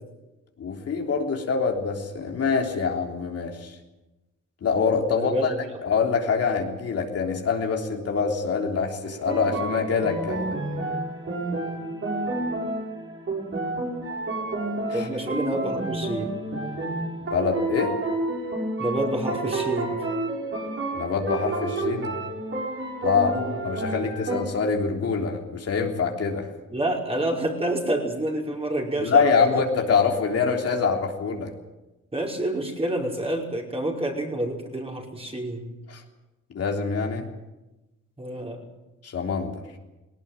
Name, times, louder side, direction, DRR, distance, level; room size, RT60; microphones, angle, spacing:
voice 1, 0.6-3.8 4.6-5.5 5.8-10.6 14.9-15.1 17.3-17.9 20.9-22.2 23.0-26.5 29.0-31.5 35.9-36.0 36.5-37.3 39.0-39.6, left 5 dB, 55° left, 1 dB, 3.5 m, -25 dB
voice 2, 5.2-5.6 14.9-16.3 18.8-20.1 23.4-23.5 26.7-29.6 32.1-35.7 38.2-38.6, right 1 dB, 20° right, 0 dB, 5.4 m, -28 dB
sound 1, 9.0-24.4, right 2 dB, 45° right, 6.4 m, -30 dB
19.0 x 18.5 x 9.0 m, 1.1 s
cardioid pair, 90°, 30 cm